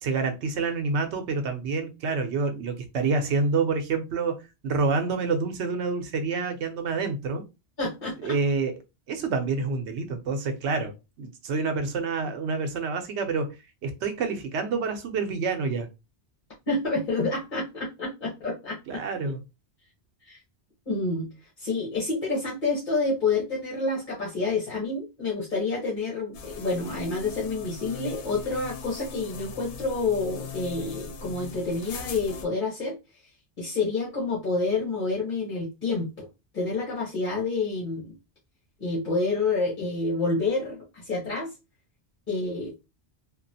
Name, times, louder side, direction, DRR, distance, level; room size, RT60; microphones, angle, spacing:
voice 1, 0.0-7.4 8.2-8.7 9.1-10.9 11.2-13.6 13.8-15.9 18.9-19.4, right 4 dB, 85° right, 0.9 m, -27 dB
voice 2, 7.8-8.4 16.7-19.0 20.2-20.4 20.9-21.3 21.6-33.0 33.6-36.3 36.5-38.1 38.8-41.5 42.3-42.8, left 3 dB, 45° left, 1.2 m, -28 dB
sound 1, 26.3-32.4, left 5 dB, 90° left, 0.9 m, -40 dB
2.9 x 2.4 x 2.7 m
omnidirectional pair, 1.1 m